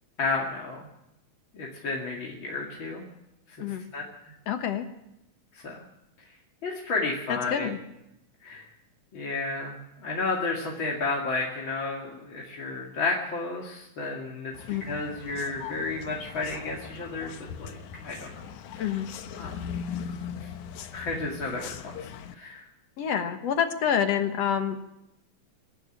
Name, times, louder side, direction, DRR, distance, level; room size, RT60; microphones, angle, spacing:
voice 1, 0.2-0.9 1.5-3.1 3.6-3.7 3.9-4.3 5.6-5.8 6.6-7.7 8.4-8.7 9.1-9.7 10.0-14.5 14.8-18.3 18.7-18.9 19.4-19.6 20.4-20.5 20.9-21.7 22.3-22.6, left 3 dB, 45° left, -2 dB, 2.9 m, -32 dB
voice 2, 4.5-4.9 7.3-7.8 14.7-14.9 18.8-19.1 23.0-24.9, left 8 dB, 65° left, 8 dB, 2.3 m, -27 dB
sound 1, 14.5-22.4, left 7 dB, 85° left, 2.5 m, -40 dB
24.5 x 11.5 x 10.0 m, 0.88 s
omnidirectional pair, 3.3 m